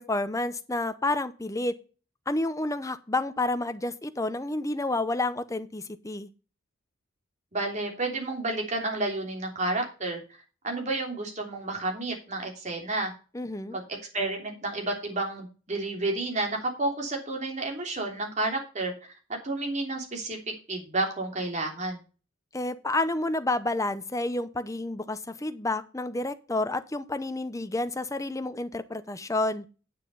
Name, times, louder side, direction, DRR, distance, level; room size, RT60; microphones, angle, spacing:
voice 1, 0.0-1.8 2.3-6.3 13.3-13.8 22.5-29.6, left 2 dB, 15° left, 0.7 m, -30 dB
voice 2, 7.5-10.2 10.6-13.1 13.7-18.9 19.3-20.4 20.7-22.0, right 2 dB, 35° right, 3.1 m, -31 dB
9.5 x 6.6 x 5.3 m
head